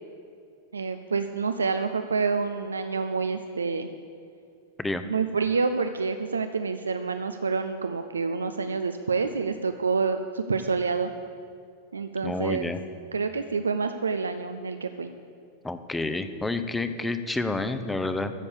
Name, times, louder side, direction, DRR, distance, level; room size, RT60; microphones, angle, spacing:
voice 1, 0.7-3.9 5.0-11.1 11.9-12.7 13.1-15.1, right 4 dB, 75° right, 8 dB, 0.5 m, -28 dB
voice 2, 12.2-12.8 15.6-18.3, left 2 dB, 10° left, 10 dB, 0.8 m, -29 dB
14.5 x 7.0 x 8.3 m, 2.3 s
figure-of-eight pair, 90°, 0 cm